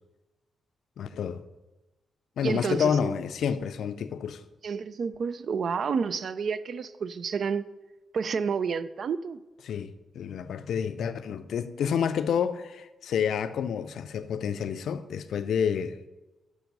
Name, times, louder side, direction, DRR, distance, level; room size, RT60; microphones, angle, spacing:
voice 1, 1.0-1.4 2.4-4.4 9.6-16.1, left 7 dB, 80° left, 0.3 m, -29 dB
voice 2, 2.4-3.1 4.6-7.6 8.1-9.4, right 6 dB, 65° right, 0.3 m, -30 dB
5.9 x 5.0 x 5.2 m
cardioid pair, 65°, 0 cm